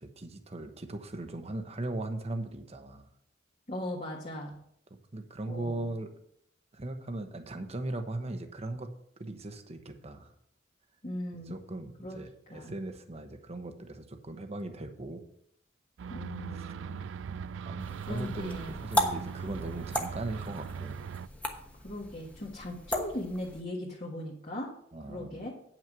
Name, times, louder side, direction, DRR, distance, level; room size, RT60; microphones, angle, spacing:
voice 1, 0.0-3.1 5.1-6.1 6.7-8.9 9.2-10.3 11.3-15.2 16.5-16.7 17.3-21.0 24.9-25.4, right 2 dB, 35° right, 7 dB, 1.0 m, -38 dB
voice 2, 3.7-4.5 5.5-5.9 11.0-11.6 12.0-12.2 12.5-12.8 16.1-17.0 18.1-18.8 21.8-24.7 25.1-25.5, left 1 dB, 40° left, -3 dB, 1.5 m, -38 dB
sound 1, 16.0-21.3, right 6 dB, 75° right, 0.3 m, -40 dB
sound 2, 17.8-23.6, left 1 dB, 5° left, 1.1 m, -36 dB
9.2 x 6.1 x 6.0 m, 0.70 s
head